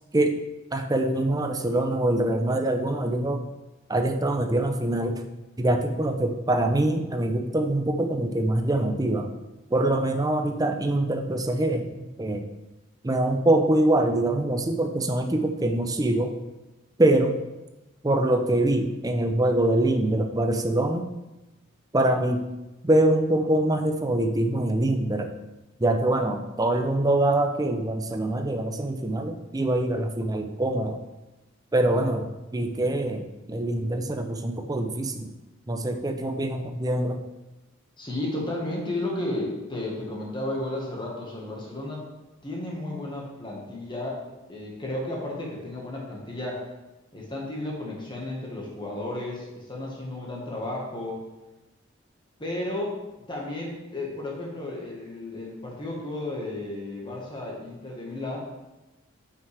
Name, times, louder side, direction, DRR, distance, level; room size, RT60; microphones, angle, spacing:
voice 1, 0.7-3.4 3.9-5.2 5.6-9.3 9.7-12.4 13.0-16.3 17.0-17.3 18.0-21.1 21.9-22.4 22.8-25.3 25.8-31.0 31.7-35.3 35.7-37.2, right 1 dB, 15° right, 6 dB, 0.5 m, -24 dB
voice 2, 38.0-42.0 42.4-44.2 44.5-46.6 47.1-51.2 52.4-53.0 53.3-58.4, left 1 dB, 20° left, -3 dB, 1.4 m, -33 dB
9.0 x 5.8 x 3.3 m, 1.0 s
head